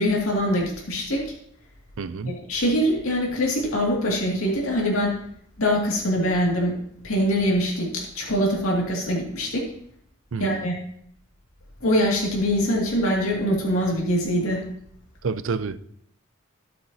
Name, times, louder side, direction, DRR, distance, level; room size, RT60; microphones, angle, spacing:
voice 1, 0.0-1.3 2.3-5.2 5.6-6.8 7.0-9.7 10.4-10.7 11.8-14.6, equal, 90° left, -3 dB, 2.2 m, -23 dB
voice 2, 2.0-2.3 10.3-10.7 15.2-15.8, right 4 dB, 70° right, 14 dB, 0.5 m, -29 dB
17.0 x 6.8 x 2.8 m, 0.67 s
head